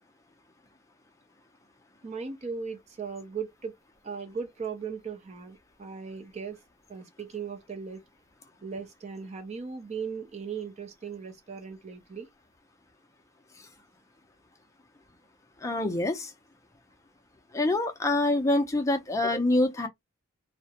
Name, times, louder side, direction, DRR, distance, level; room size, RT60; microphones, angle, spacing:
voice 1, 2.0-3.7 4.0-6.6 6.9-8.0 8.6-12.3, right 5 dB, 35° right, 0.5 m, -38 dB
voice 2, 15.6-16.3 17.5-19.9, left 2 dB, 15° left, 0.5 m, -25 dB
2.3 x 2.1 x 2.8 m
head